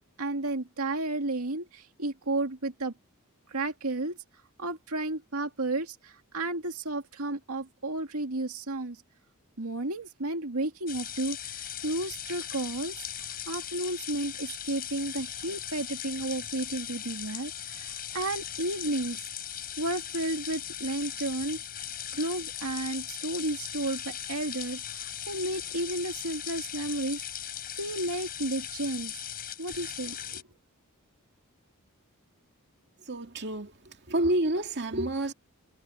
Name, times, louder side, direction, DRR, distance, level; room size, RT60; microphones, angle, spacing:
voice 1, 0.2-2.9 3.5-4.2 4.6-9.0 9.6-13.1 13.5-19.3 19.8-21.6 22.1-27.2 27.8-29.2 29.6-30.4, right 2 dB, 75° right, 2.3 m, -32 dB
sound 1, 10.9-30.4, left 10 dB, 45° left, 4.7 m, -38 dB
voice 2, 33.1-35.3, right 1 dB, 50° right, 2.4 m, -29 dB
head